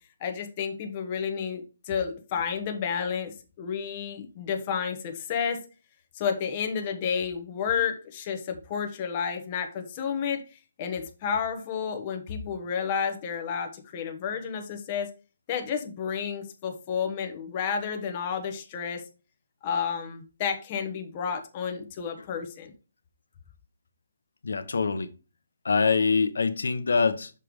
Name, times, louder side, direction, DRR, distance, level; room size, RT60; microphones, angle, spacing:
voice 1, 0.2-5.6 6.1-10.4 10.8-15.1 15.5-19.0 19.6-22.7, left 7 dB, 25° left, 0.9 m, -31 dB
voice 2, 24.4-25.1 25.6-27.3, left 5 dB, 80° left, 0.9 m, -24 dB
6.6 x 3.2 x 5.0 m
hypercardioid pair, 170°, 0 cm